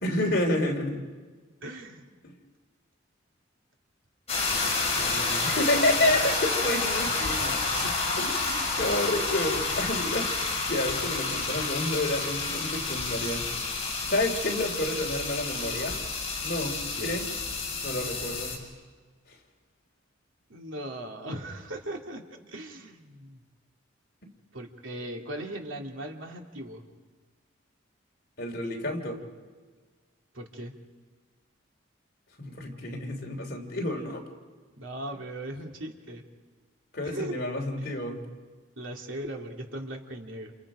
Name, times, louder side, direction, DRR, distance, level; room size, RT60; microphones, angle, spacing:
voice 1, 0.0-1.0 2.2-2.3 5.4-7.6 8.2-8.5 8.8-13.4 14.1-16.0 16.4-17.2 17.8-18.6 28.4-29.2 32.4-34.2 36.9-38.2, left 1 dB, 50° left, 2 dB, 3.2 m, -29 dB
voice 2, 1.6-2.0 4.9-5.5 5.9-6.1 7.7-8.0 8.5-8.8 17.0-17.1 20.5-23.4 24.5-26.8 30.3-30.7 34.8-36.2 37.0-37.4 37.8-37.9 38.8-40.5, right 1 dB, 75° right, 1 dB, 2.8 m, -38 dB
sound 1, 4.3-18.6, left 3 dB, 30° left, 5.6 m, -29 dB
29.5 x 29.0 x 5.1 m, 1.4 s
head